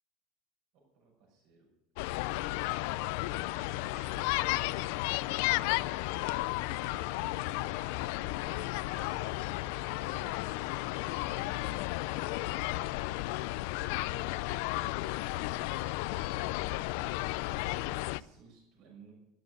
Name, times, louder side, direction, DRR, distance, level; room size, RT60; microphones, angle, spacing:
voice 1, 0.7-1.7 2.4-13.5 13.8-14.5 14.9-16.8 17.4-19.1, right 4 dB, 60° right, -1 dB, 6.4 m, -57 dB
sound 1, 2.0-18.2, left 19 dB, 70° left, 0.4 m, -33 dB
Speech, 3.6-5.6 5.9-11.9, right 4 dB, 30° right, 4.0 m, -59 dB
13.0 x 12.5 x 7.8 m, 0.88 s
supercardioid pair, 140°, 0 cm